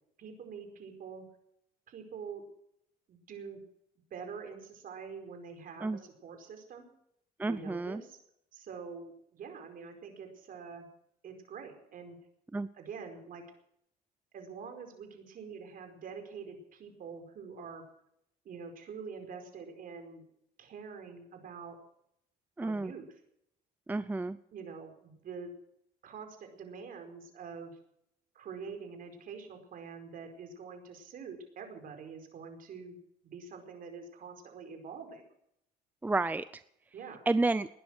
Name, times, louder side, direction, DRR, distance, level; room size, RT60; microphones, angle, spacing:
voice 1, 0.2-1.2 1.9-2.4 3.1-3.6 4.1-6.9 7.4-8.2 8.5-10.9 11.2-12.2 12.7-13.4 14.3-17.8 18.4-20.2 20.6-21.8 22.6-23.2 24.5-25.5 26.0-27.8 28.3-33.0 33.2-35.2 36.9-37.2, right 5 dB, 55° right, 5 dB, 4.9 m, -45 dB
voice 2, 7.4-8.0 12.5-12.7 22.6-22.9 23.9-24.4 36.0-36.4 37.3-37.7, right 2 dB, 10° right, 14 dB, 0.6 m, -30 dB
20.0 x 10.5 x 6.3 m, 0.74 s
cardioid pair, 110°, 17 cm